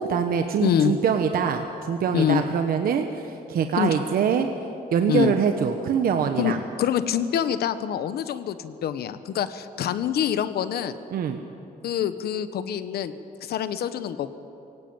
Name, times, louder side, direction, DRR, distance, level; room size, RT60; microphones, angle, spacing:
voice 1, 0.0-4.5 4.9-6.6 11.1-11.4, right 7 dB, 70° right, 6 dB, 1.1 m, -24 dB
voice 2, 0.6-0.9 2.1-2.4 3.8-3.9 5.1-5.3 6.4-11.0 11.8-13.1 13.4-14.3, left 9 dB, 90° left, 12 dB, 1.1 m, -25 dB
22.5 x 17.5 x 8.9 m, 2.8 s
wide cardioid pair, 165°, 16 cm